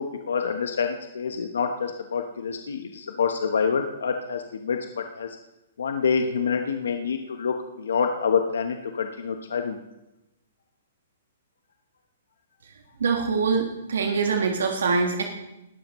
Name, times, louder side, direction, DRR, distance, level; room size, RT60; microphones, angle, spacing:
voice 1, 0.0-4.8 5.1-5.3 5.8-9.8, left 6 dB, 80° left, 5 dB, 1.1 m, -27 dB
voice 2, 13.0-15.2, right 4 dB, 80° right, 2 dB, 1.6 m, -24 dB
20.0 x 12.0 x 3.1 m, 0.94 s
hypercardioid pair, 140°, 0 cm